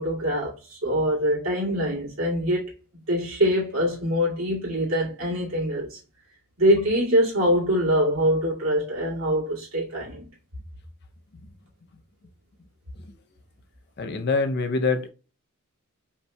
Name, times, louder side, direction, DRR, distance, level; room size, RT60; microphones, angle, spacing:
voice 1, 0.0-2.7 3.1-6.0 6.6-10.3, equal, 80° right, 2.2 m, -24 dB
voice 2, 14.0-15.1, left 4 dB, 55° left, 0.6 m, -24 dB
5.4 x 2.9 x 2.2 m
head